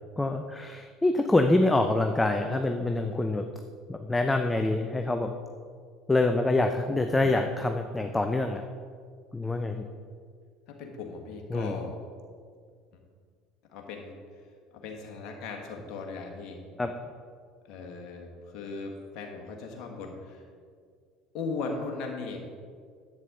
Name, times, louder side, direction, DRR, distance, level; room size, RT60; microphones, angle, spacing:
voice 1, 0.2-3.5 3.9-5.3 6.1-8.6 9.3-9.9 11.5-11.8 16.8-16.9, left 2 dB, 15° left, 6 dB, 0.6 m, -26 dB
voice 2, 10.8-11.9 13.7-14.1 14.7-16.6 17.6-20.4 21.3-22.4, left 4 dB, 55° left, 1 dB, 1.6 m, -38 dB
10.5 x 8.5 x 3.9 m, 2.1 s
hypercardioid pair, 65°, 0 cm